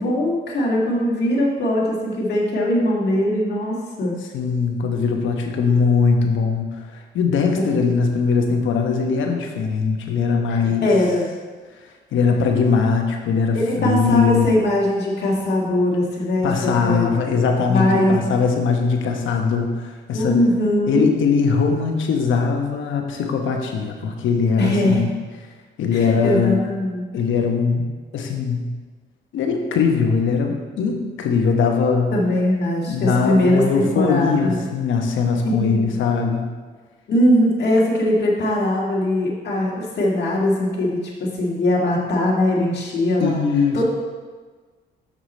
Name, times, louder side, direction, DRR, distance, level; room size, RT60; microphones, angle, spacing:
voice 1, 0.0-4.2 7.6-7.8 10.5-11.3 13.5-17.4 17.7-18.3 20.1-21.0 24.6-25.1 25.9-27.0 32.1-34.6 35.4-36.0 37.1-43.4 43.7-43.8, left 1 dB, 60° left, -4 dB, 1.9 m, -21 dB
voice 2, 4.3-10.8 12.1-14.5 16.4-20.4 20.9-25.1 25.8-26.6 27.1-27.8 28.1-28.7 29.3-32.1 32.9-36.4 43.2-43.8, left 5 dB, 75° left, 3 dB, 1.1 m, -20 dB
6.8 x 6.2 x 4.3 m, 1.4 s
cardioid pair, 90°, 20 cm